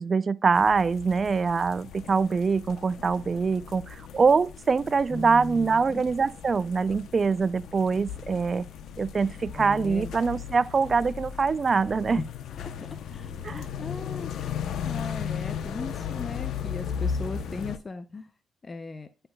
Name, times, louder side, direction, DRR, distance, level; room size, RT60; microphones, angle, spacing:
voice 1, 0.0-8.7 9.0-12.2 13.4-13.6, right 5 dB, 35° right, 0.4 m, -24 dB
sound 1, 0.5-17.8, left 7 dB, 70° left, 0.7 m, -36 dB
voice 2, 5.1-6.0 9.6-10.1 12.1-12.2 12.6-12.7 13.1-18.3 18.6-19.1, left 3 dB, 30° left, 0.5 m, -38 dB
9.6 x 5.6 x 2.3 m
cardioid pair, 90°, 0 cm